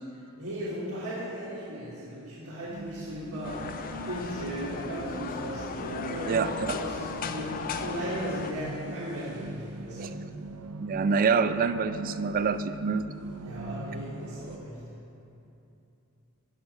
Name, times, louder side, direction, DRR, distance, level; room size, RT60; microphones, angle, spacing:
voice 1, 0.1-3.8 4.1-10.1 13.4-14.8, equal, 70° right, -8 dB, 1.5 m, -37 dB
sound 1, 2.7-14.6, right 2 dB, 90° right, 0.5 m, -41 dB
sound 2, 3.4-8.5, left 5 dB, 40° left, 0.4 m, -36 dB
voice 2, 6.3-6.7 10.0-10.1 10.8-13.1, right 5 dB, 40° right, 12 dB, 0.3 m, -26 dB
11.0 x 6.2 x 4.2 m, 2.8 s
head